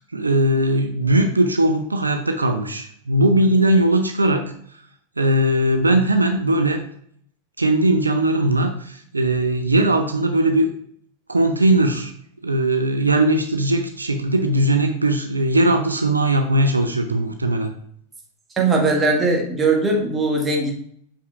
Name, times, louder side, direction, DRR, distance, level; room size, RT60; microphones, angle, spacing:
voice 1, 0.1-4.4 5.2-6.8 7.6-10.7 11.3-12.1 12.4-17.7, right 1 dB, 80° right, 5 dB, 0.6 m, -19 dB
voice 2, 18.5-20.7, right 3 dB, 20° right, 1 dB, 1.6 m, -19 dB
7.0 x 5.5 x 2.5 m, 0.64 s
figure-of-eight pair, 90°, 0 cm